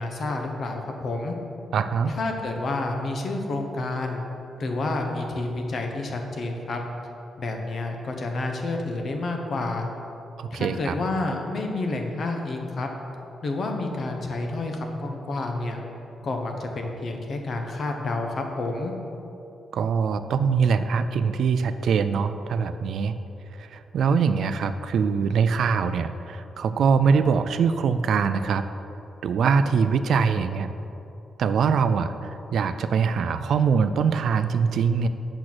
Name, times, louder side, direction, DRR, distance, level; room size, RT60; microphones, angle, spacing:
voice 1, 0.0-1.4 2.2-4.2 4.6-6.8 7.4-9.9 10.5-12.9 13.4-15.8 16.2-18.9, left 2 dB, 40° left, 3 dB, 1.0 m, -29 dB
voice 2, 1.7-2.1 10.4-11.0 19.7-23.2 23.5-28.6 29.2-30.7 31.4-35.1, right 6 dB, 60° right, 10 dB, 0.4 m, -23 dB
8.6 x 6.2 x 6.1 m, 2.9 s
wide cardioid pair, 175°, 0 cm